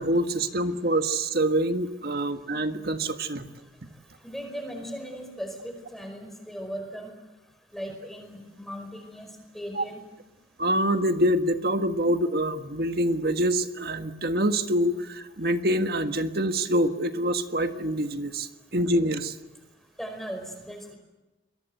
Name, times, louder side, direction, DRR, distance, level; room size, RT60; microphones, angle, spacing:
voice 1, 0.0-3.5 9.7-9.8 10.6-19.3, right 1 dB, 60° right, 7 dB, 1.7 m, -25 dB
voice 2, 4.2-7.1 7.7-9.3 9.5-10.0 20.0-20.9, equal, ahead, 5 dB, 5.0 m, -38 dB
28.0 x 22.5 x 8.0 m, 1.1 s
head